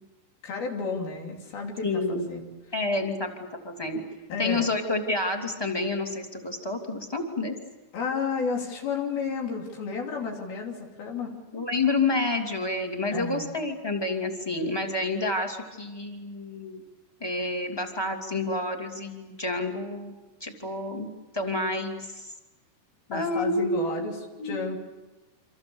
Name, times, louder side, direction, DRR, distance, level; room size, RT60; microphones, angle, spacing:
voice 1, 0.4-2.5 4.3-4.7 7.9-11.3 13.1-13.5 23.1-24.2 24.4-24.8, left 5 dB, 80° left, 1 dB, 5.0 m, -32 dB
voice 2, 1.8-2.3 2.7-4.0 4.4-7.5 11.5-16.8 17.2-20.1 20.4-22.3 23.1-24.1 24.4-24.7, left 2 dB, 10° left, 2 dB, 2.2 m, -29 dB
28.0 x 26.5 x 7.1 m, 1.2 s
omnidirectional pair, 4.2 m